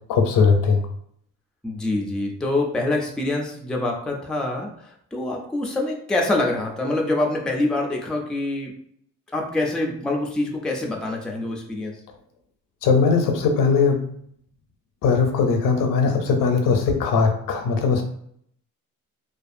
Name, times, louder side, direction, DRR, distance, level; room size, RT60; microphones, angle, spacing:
voice 1, 0.1-0.8 12.8-14.0 15.0-18.0, left 5 dB, 80° left, 4 dB, 0.6 m, -19 dB
voice 2, 1.6-4.7 5.1-8.7 9.3-11.9, left 2 dB, 5° left, 0 dB, 0.3 m, -25 dB
2.5 x 2.3 x 2.5 m, 0.66 s
cardioid pair, 135°, 32 cm